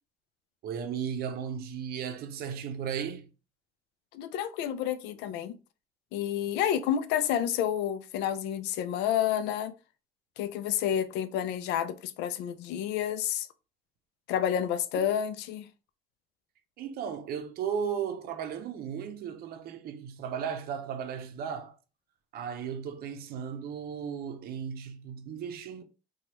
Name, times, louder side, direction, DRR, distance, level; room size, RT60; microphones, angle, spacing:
voice 1, 0.6-3.3 16.8-21.8 22.3-25.8, right 7 dB, 65° right, 0.6 m, -35 dB
voice 2, 4.1-5.5 6.1-9.7 10.4-13.5 14.3-15.7, left 10 dB, 85° left, 0.4 m, -29 dB
3.0 x 2.3 x 2.8 m
cardioid pair, 110°, 17 cm